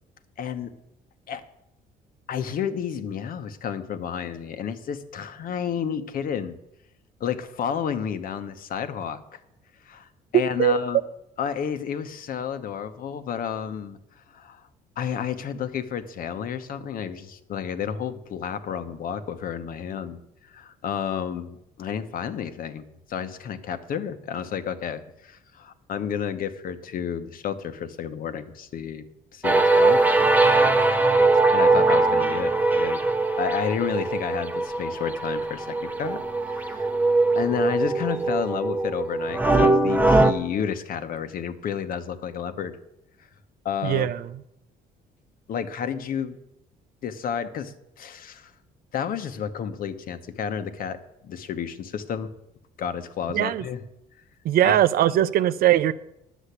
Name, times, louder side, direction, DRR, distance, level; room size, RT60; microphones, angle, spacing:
voice 1, 0.4-0.7 1.3-1.4 2.3-6.6 7.2-9.2 9.8-10.1 10.3-11.0 11.4-14.0 14.3-14.6 15.0-20.2 20.5-29.0 29.3-30.0 31.5-33.0 33.4-36.9 37.3-42.8 43.6-44.1 45.5-46.4 47.0-48.5 48.9-51.0 51.2-52.3 52.8-53.8 54.6-55.2, left 8 dB, 55° left, 1.1 m, -31 dB
sound 1, 29.4-40.3, right 2 dB, 10° right, 0.8 m, -21 dB
voice 2, 43.8-44.2 53.3-53.6 54.4-55.9, right 11 dB, 60° right, 0.6 m, -20 dB
10.0 x 7.2 x 8.2 m
cardioid pair, 110°, 17 cm